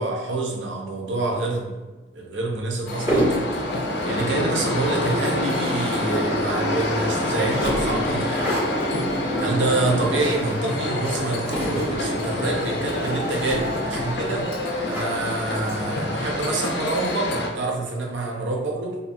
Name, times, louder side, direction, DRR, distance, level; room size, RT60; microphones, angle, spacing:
voice 1, 0.0-1.8 2.1-3.7 4.0-8.5 9.4-14.4 14.9-19.0, right 2 dB, 85° right, 0 dB, 0.5 m, -27 dB
sound 1, 2.8-16.3, equal, 15° right, 1.2 m, -32 dB
sound 2, 2.9-17.5, left 1 dB, 65° left, 0.4 m, -26 dB
2.5 x 2.5 x 2.4 m, 1.2 s
head